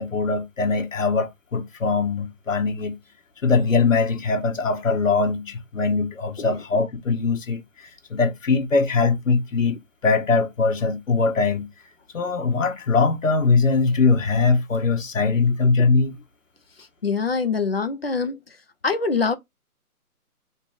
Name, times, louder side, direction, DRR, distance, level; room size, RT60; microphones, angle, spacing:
voice 1, 0.0-3.0 3.4-11.7 12.1-16.2, left 4 dB, 60° left, 1.2 m, -21 dB
voice 2, 17.0-18.4 18.8-19.4, left 4 dB, 40° left, 0.6 m, -24 dB
3.3 x 2.9 x 4.6 m
hypercardioid pair, 170°, 45 cm